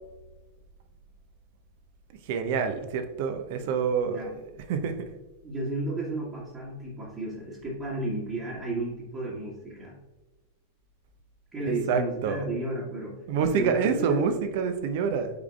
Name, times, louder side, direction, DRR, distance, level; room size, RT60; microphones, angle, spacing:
voice 1, 2.3-4.2 4.7-4.9 11.7-12.4 13.3-15.3, right 6 dB, 50° right, 7 dB, 0.7 m, -27 dB
voice 2, 5.4-10.0 11.5-14.2, right 2 dB, 25° right, -6 dB, 1.5 m, -33 dB
8.2 x 4.9 x 2.4 m, 1.1 s
figure-of-eight pair, 90°, 0 cm